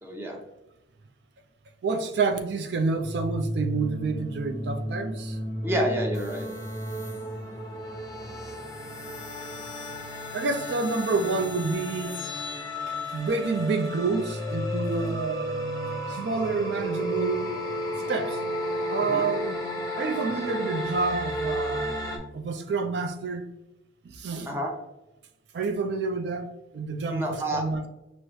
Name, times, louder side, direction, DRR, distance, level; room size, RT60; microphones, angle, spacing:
voice 1, 0.0-0.4 5.6-6.5 19.1-19.3 24.4-24.7 27.1-27.6, right 1 dB, 15° right, 0.7 m, -28 dB
voice 2, 1.8-5.4 10.3-12.3 12.7-15.7 16.1-17.6 18.1-18.4 18.9-19.6 19.9-21.9 22.3-23.5 24.0-24.5 25.5-27.9, right 4 dB, 70° right, 0.4 m, -28 dB
sound 1, 3.0-22.2, equal, 20° left, 0.8 m, -33 dB
6.1 x 2.1 x 3.0 m
head